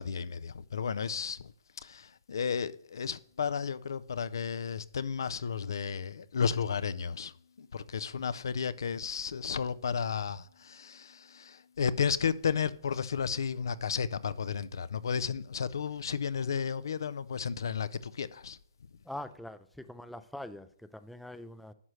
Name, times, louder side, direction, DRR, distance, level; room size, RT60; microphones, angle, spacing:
voice 1, 0.0-1.5 1.8-7.3 7.6-18.6, left 6 dB, 75° left, 0.4 m, -33 dB
voice 2, 19.0-21.7, left 1 dB, ahead, 0.4 m, -43 dB
11.0 x 6.2 x 3.1 m
hypercardioid pair, 140°, 2 cm